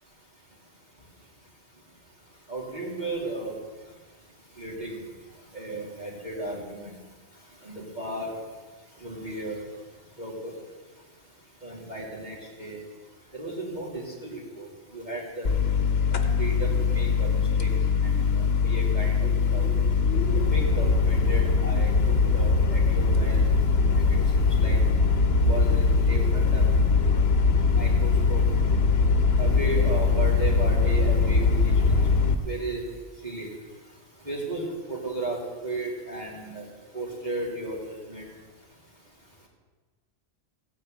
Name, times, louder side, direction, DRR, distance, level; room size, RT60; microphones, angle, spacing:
voice 1, 2.5-3.5 4.6-5.0 5.5-6.9 7.6-8.3 9.0-9.6 10.2-10.5 11.6-12.8 13.3-14.7 14.9-15.5 16.4-17.7 18.0-19.7 20.5-23.6 23.9-24.1 24.3-24.8 25.4-26.6 27.7-28.4 29.4-31.6 31.8-32.0 32.4-32.8 33.2-33.5 34.3-36.6 36.9-37.8 38.1-38.3, right 2 dB, 40° right, -4 dB, 3.5 m, -34 dB
sound 1, 15.4-32.3, left 4 dB, 65° left, 1.4 m, -22 dB
15.5 x 9.7 x 9.1 m, 1.3 s
omnidirectional pair, 1.2 m